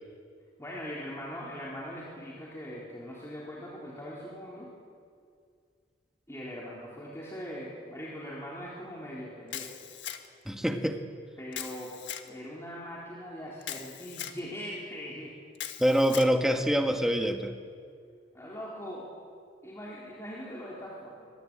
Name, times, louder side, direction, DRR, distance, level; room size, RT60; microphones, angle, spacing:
voice 1, 0.6-4.7 6.3-9.7 11.4-11.9 12.2-15.3 18.3-19.1 19.6-21.3, equal, 15° left, -5 dB, 3.7 m, -41 dB
Camera, 9.5-10.5 11.5-12.3 13.6-14.4 15.6-16.3, left 10 dB, 70° left, 1.7 m, -39 dB
voice 2, 10.4-11.0 15.8-17.5, equal, ahead, 4 dB, 1.6 m, -25 dB
24.5 x 23.0 x 8.8 m, 2.2 s
head